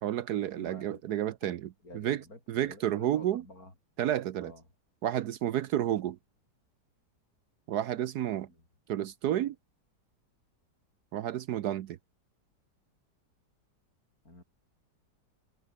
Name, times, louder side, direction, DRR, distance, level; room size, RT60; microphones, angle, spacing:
voice 1, 0.0-1.7 1.9-2.2 2.5-3.4 4.0-4.5 5.0-6.2 7.7-8.5 8.9-9.6 11.1-12.0, right 11 dB, 70° right, 1.2 m, -31 dB
voice 2, 0.6-1.0 1.4-1.5 1.8-3.7 4.4-4.6 5.9-6.0 8.5-8.6 14.2-14.4, left 2 dB, 55° left, 8.3 m, -50 dB
omnidirectional pair, 1.9 m